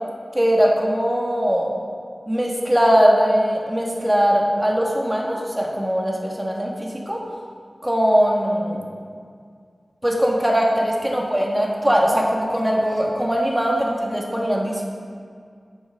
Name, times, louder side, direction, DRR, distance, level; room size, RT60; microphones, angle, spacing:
voice 1, 0.3-1.8 2.3-7.2 7.8-8.9 10.0-14.9, equal, 15° right, -2 dB, 1.9 m, -20 dB
11.5 x 7.4 x 3.7 m, 2.1 s
cardioid pair, 45°, 0 cm